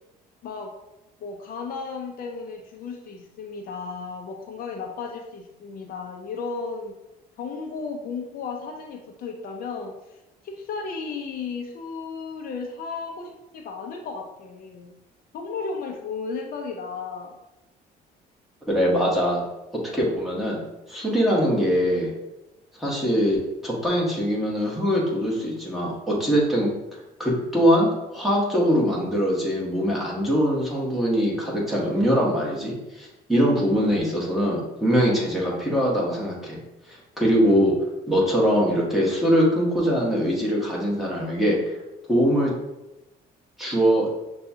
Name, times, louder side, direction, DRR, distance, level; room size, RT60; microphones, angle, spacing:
voice 1, 0.4-0.7 1.2-6.9 7.4-10.2 10.4-14.9 15.3-17.4, left 4 dB, 60° left, 2 dB, 0.6 m, -34 dB
voice 2, 18.7-19.4 19.7-20.6 20.9-22.1 22.8-26.7 27.2-36.6 36.9-37.7 38.1-41.6 42.1-42.5 43.6-44.1, equal, ahead, -5 dB, 1.3 m, -22 dB
6.5 x 2.3 x 2.8 m, 0.97 s
cardioid pair, 110°, 17 cm